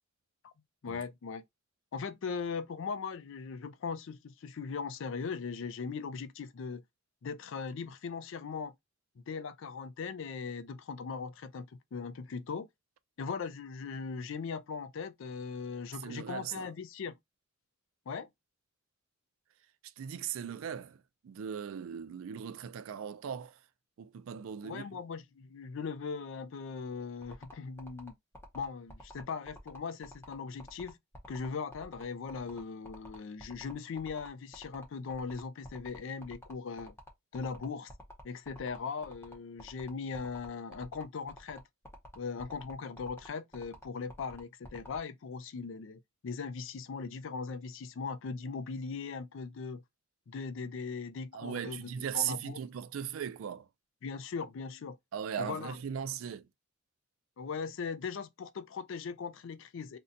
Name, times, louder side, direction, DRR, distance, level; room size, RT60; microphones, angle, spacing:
voice 1, 0.8-1.4 1.9-6.8 7.2-8.7 9.2-12.7 13.2-17.1 18.1-18.3 24.6-28.1 28.5-31.0 31.3-36.9 37.3-37.9 38.2-41.6 42.2-49.8 50.3-52.6 54.0-55.0 55.4-55.8 57.4-60.0, left 5 dB, 65° left, 0.4 m, -39 dB
voice 2, 16.0-16.7 19.8-23.6 24.0-25.0 51.3-53.7 55.1-56.5, right 8 dB, 80° right, 0.4 m, -38 dB
sound 1, 27.2-45.0, left 1 dB, 10° left, 0.7 m, -50 dB
2.7 x 2.2 x 3.7 m
head